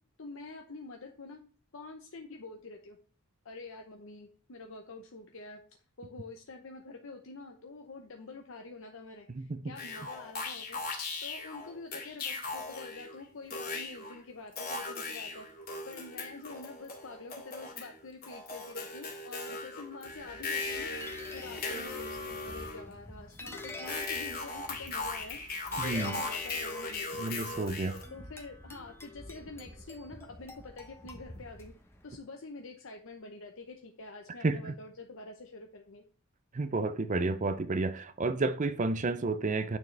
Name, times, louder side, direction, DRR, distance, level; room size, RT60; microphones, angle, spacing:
voice 1, 0.2-1.4 1.7-3.0 3.4-5.6 6.0-10.8 11.2-15.5 15.9-20.9 21.3-25.4 25.8-27.4 28.1-31.7 32.0-36.0, left 3 dB, 60° left, 0.8 m, -47 dB
voice 2, 9.3-9.8 25.8-26.2 27.2-28.0 34.4-34.7 36.5-39.8, right 3 dB, 35° right, 0.5 m, -31 dB
sound 1, 9.8-13.2 13.5-14.1 14.6-17.9 18.2-22.9 23.9-28.0, left 3 dB, 45° left, 2.3 m, -38 dB
sound 2, 20.1-32.2, left 2 dB, 10° left, 1.0 m, -47 dB
9.2 x 6.4 x 3.3 m
head